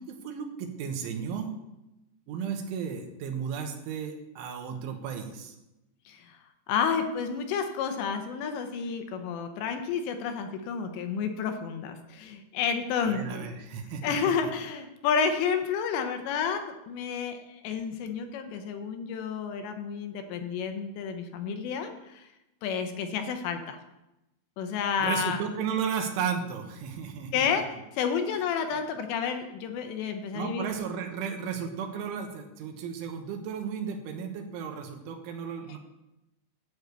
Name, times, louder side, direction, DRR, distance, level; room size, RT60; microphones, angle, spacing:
voice 1, 0.0-1.5 2.3-5.6 13.0-14.2 25.0-27.6 30.3-35.8, right 7 dB, 85° right, 4 dB, 3.6 m, -34 dB
voice 2, 6.1-6.4 6.7-13.5 14.0-22.3 22.6-23.8 24.6-25.4 27.3-27.6 27.9-30.7, left 6 dB, 75° left, 6 dB, 2.9 m, -30 dB
11.5 x 4.8 x 8.0 m, 0.93 s
omnidirectional pair, 5.4 m